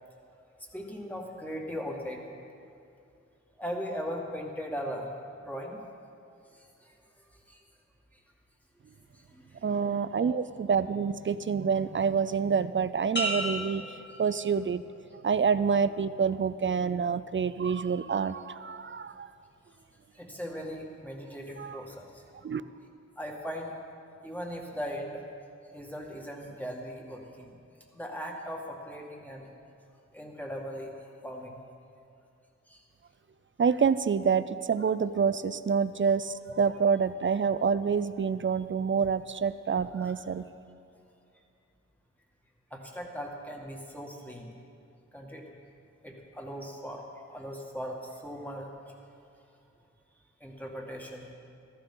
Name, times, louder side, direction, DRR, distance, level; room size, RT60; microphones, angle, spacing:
voice 1, 0.7-2.2 3.6-5.1 5.4-5.8 6.5-7.6 8.1-8.2 9.1-10.5 14.1-14.2 20.1-22.3 22.6-22.8 23.2-23.7 24.2-25.2 25.7-27.6 27.9-29.5 30.1-30.9 31.2-31.6 32.7-32.8 39.9-40.1 42.7-44.5 45.1-45.5 46.0-48.9 50.4-51.3, equal, 5° left, -1 dB, 2.1 m, -39 dB
voice 2, 9.6-13.8 14.2-14.8 15.2-19.3 21.6-21.8 22.4-22.6 33.6-40.5, right 6 dB, 45° right, 14 dB, 0.5 m, -27 dB
sound 1, 13.2-14.9 15.4-15.9, equal, 40° left, 2.7 m, -35 dB
15.5 x 13.5 x 3.9 m, 2.5 s
wide cardioid pair, 65°, 29 cm